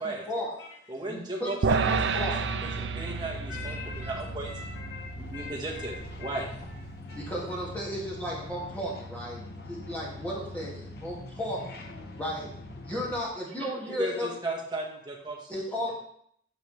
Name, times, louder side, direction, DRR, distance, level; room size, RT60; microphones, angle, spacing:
voice 1, 0.0-0.5 1.1-1.5 1.8-2.4 7.1-9.4 9.7-11.6 12.2-12.5 12.8-14.3 15.5-15.9, equal, 10° left, -5 dB, 2.7 m, -34 dB
voice 2, 0.9-2.2 2.6-4.5 5.2-5.9 6.2-6.5 13.9-15.5, right 2 dB, 25° right, -2 dB, 1.9 m, -35 dB
sound 1, 1.6-8.0, right 5 dB, 70° right, 0.4 m, -32 dB
sound 2, 1.7-13.2, left 2 dB, 55° left, 1.0 m, -43 dB
voice 3, 3.5-7.3, left 4 dB, 90° left, -4 dB, 3.4 m, -44 dB
12.5 x 5.7 x 3.6 m, 0.68 s
head